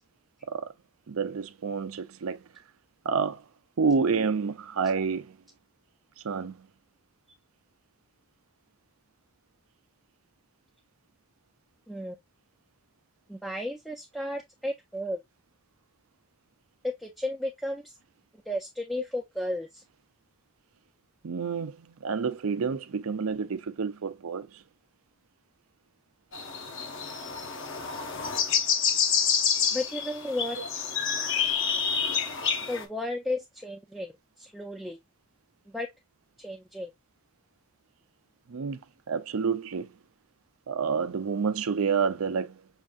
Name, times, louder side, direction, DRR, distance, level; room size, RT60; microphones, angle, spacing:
voice 1, 1.1-2.4 3.1-3.4 3.8-5.3 6.2-6.6 21.2-24.5 30.6-30.7 38.5-38.8 39.1-39.9 40.7-42.6, right 5 dB, 75° right, 0.5 m, -29 dB
voice 2, 13.3-15.2 16.8-18.0 18.5-19.8 29.7-30.6 32.7-34.1 34.4-35.0 35.7-35.9 36.4-36.9, left 1 dB, ahead, 0.4 m, -33 dB
sound 1, 26.3-32.8, left 6 dB, 60° left, 0.9 m, -28 dB
6.4 x 2.6 x 2.3 m
head